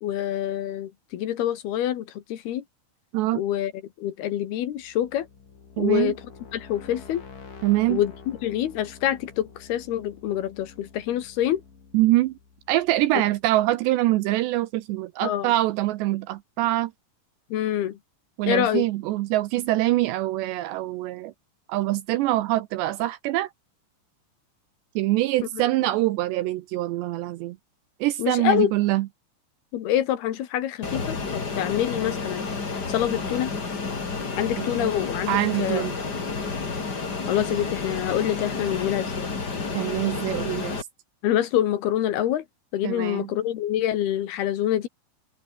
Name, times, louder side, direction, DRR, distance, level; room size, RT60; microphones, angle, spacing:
voice 1, 0.0-2.6 3.3-3.7 4.0-5.3 5.8-6.2 6.5-7.2 7.9-11.6 15.2-15.5 17.5-18.0 18.4-18.8 25.6-25.7 28.2-28.7 29.7-32.5 32.9-33.5 34.4-35.8 37.3-39.3 41.2-42.4 42.7-44.9, left 11 dB, 65° left, 3.1 m, -26 dB
sound 1, 4.7-13.5, left 5 dB, 45° left, 5.9 m, -47 dB
voice 2, 5.8-6.1 7.6-8.0 11.9-12.4 12.7-16.9 18.4-21.3 21.7-23.5 25.0-27.6 28.0-29.1 34.6-34.9 35.3-36.0 39.7-40.9 42.8-43.3, right 16 dB, 80° right, 2.7 m, -24 dB
Fixed-wing aircraft airplane, 30.8-40.8, left 4 dB, 25° left, 2.7 m, -30 dB
open air
omnidirectional pair, 5.6 m